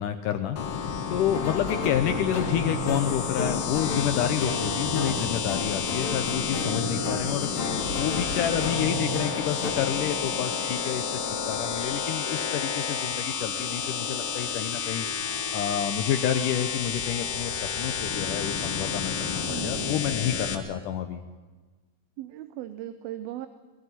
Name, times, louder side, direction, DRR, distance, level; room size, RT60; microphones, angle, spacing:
voice 1, 0.0-15.1 15.5-21.2, left 10 dB, 70° left, 8 dB, 2.1 m, -29 dB
sound 1, 0.6-20.6, left 6 dB, 55° left, 1.7 m, -30 dB
sound 2, 1.3-9.7, left 2 dB, 40° left, 2.7 m, -33 dB
voice 2, 4.4-4.8 19.4-19.9 22.2-23.5, right 13 dB, 80° right, 11 dB, 2.6 m, -38 dB
21.5 x 15.0 x 9.8 m, 1.3 s
omnidirectional pair, 4.3 m